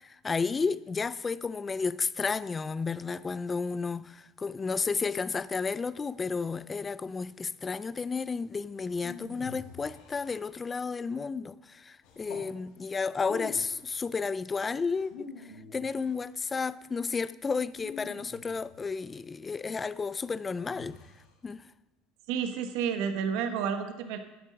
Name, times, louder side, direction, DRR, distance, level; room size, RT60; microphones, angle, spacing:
voice 1, 0.0-21.0 21.4-21.6, left 4 dB, 20° left, 0.4 m, -32 dB
sound 1, 8.8-10.8 12.0-12.5 13.2-13.9 14.9-16.3 17.8-19.0 20.6-21.3, left 5 dB, 70° left, 2.4 m, -46 dB
voice 2, 22.3-24.2, right 7 dB, 75° right, 1.2 m, -30 dB
11.0 x 9.4 x 5.2 m
supercardioid pair, 125°, 0 cm